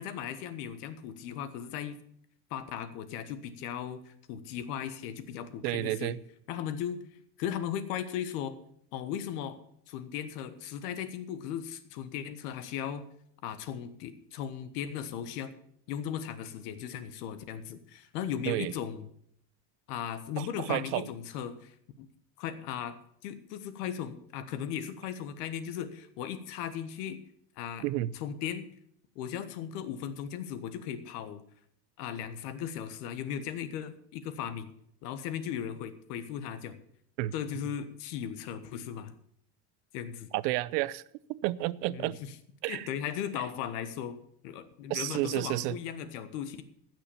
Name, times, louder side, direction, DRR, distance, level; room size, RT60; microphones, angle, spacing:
voice 1, 0.0-2.0 2.5-6.1 6.5-7.0 7.4-8.5 8.9-9.6 9.9-13.0 13.4-15.5 15.9-19.1 19.9-22.1 22.4-23.0 23.2-27.2 27.6-27.8 28.1-28.6 29.1-31.4 32.0-34.7 35.0-36.8 37.3-39.1 39.9-40.3 41.9-42.3 42.7-44.2 44.4-46.6, left 9 dB, 80° left, 1.4 m, -37 dB
voice 2, 5.6-6.2 18.5-18.7 20.4-21.1 27.8-28.1 37.2-37.3 40.3-41.0 41.3-42.2 42.6-42.9 44.9-45.8, right 17 dB, 90° right, 0.7 m, -31 dB
15.5 x 6.2 x 7.1 m
supercardioid pair, 125°, 47 cm